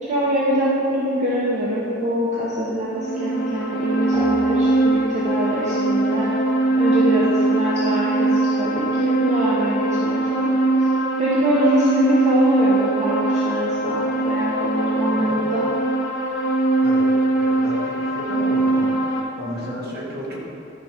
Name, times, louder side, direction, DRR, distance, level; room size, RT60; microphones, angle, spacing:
voice 1, 0.0-6.3 6.8-10.4 10.8-10.9 11.2-15.7, equal, 40° right, -8 dB, 1.3 m, -24 dB
sound 1, 2.9-19.2, right 2 dB, 90° left, 2.0 m, -21 dB
sound 2, 4.1-5.6, right 3 dB, 15° right, 0.4 m, -36 dB
voice 2, 17.4-20.4, equal, 55° right, -4 dB, 2.1 m, -33 dB
12.0 x 5.1 x 5.2 m, 2.9 s
head